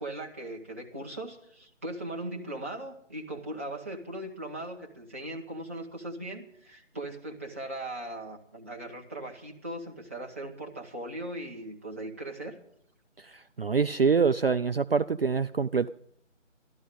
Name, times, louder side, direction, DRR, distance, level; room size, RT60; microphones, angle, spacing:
voice 1, 0.0-12.6, right 1 dB, 10° right, -3 dB, 0.9 m, -39 dB
voice 2, 13.6-15.9, right 5 dB, 50° right, 9 dB, 0.5 m, -25 dB
13.5 x 12.5 x 5.2 m, 0.69 s
figure-of-eight pair, 155°, 37 cm